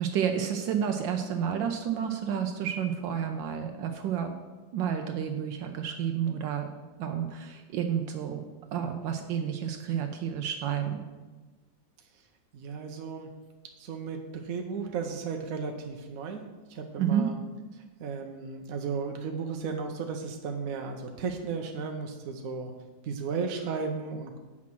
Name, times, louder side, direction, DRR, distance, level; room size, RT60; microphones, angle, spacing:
voice 1, 0.0-4.3 4.7-6.7 7.0-8.4 8.7-11.1 17.0-17.3, right 8 dB, 80° right, 5 dB, 1.4 m, -30 dB
voice 2, 12.5-13.3 13.8-16.4 16.7-17.4 17.7-22.7 23.0-24.4, right 5 dB, 60° right, 3 dB, 1.0 m, -35 dB
8.5 x 5.9 x 6.1 m, 1.3 s
omnidirectional pair, 2.0 m